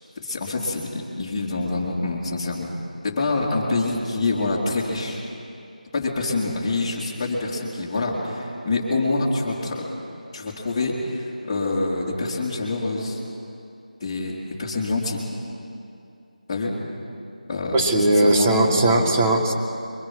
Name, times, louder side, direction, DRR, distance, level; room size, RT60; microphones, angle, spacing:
voice 1, 0.2-2.7 3.0-5.2 5.9-9.8 10.3-13.2 14.0-15.2 16.5-16.8 17.5-17.9 18.2-19.1, left 2 dB, 15° left, -9 dB, 2.9 m, -26 dB
voice 2, 17.7-19.5, right 1 dB, 15° right, 1 dB, 1.5 m, -19 dB
23.0 x 23.0 x 6.2 m, 2.6 s
figure-of-eight pair, 165°, 4 cm